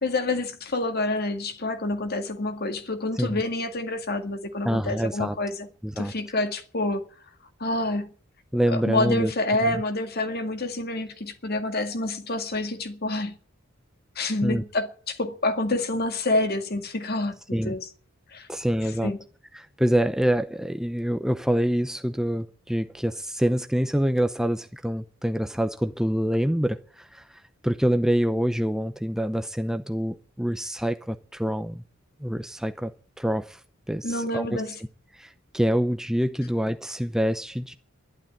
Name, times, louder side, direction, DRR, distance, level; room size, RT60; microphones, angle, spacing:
voice 1, 0.0-5.7 6.0-7.0 7.6-8.1 8.7-13.4 14.2-17.9 18.3-18.5 19.0-19.2 34.0-34.8, left 2 dB, 50° left, 2.0 m, -28 dB
voice 2, 4.6-5.4 5.8-6.1 8.5-9.3 9.6-9.8 14.4-14.6 17.5-17.7 18.5-19.1 19.5-27.3 27.6-31.8 32.2-32.9 33.2-33.6 33.9-34.6 35.1-37.7, equal, 5° right, 0.6 m, -26 dB
12.0 x 11.5 x 8.9 m
head